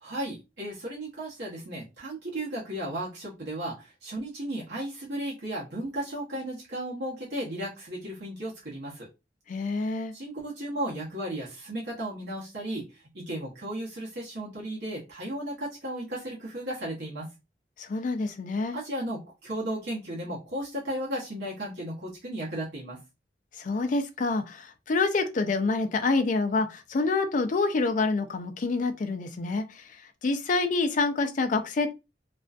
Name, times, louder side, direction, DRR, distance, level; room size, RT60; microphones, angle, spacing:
voice 1, 0.0-9.1 9.7-9.8 10.1-17.3 18.7-23.0, right 1 dB, 70° right, 0.9 m, -35 dB
voice 2, 9.5-10.1 17.8-18.8 23.5-31.9, left 3 dB, 45° left, 0.4 m, -27 dB
2.4 x 2.2 x 2.4 m
head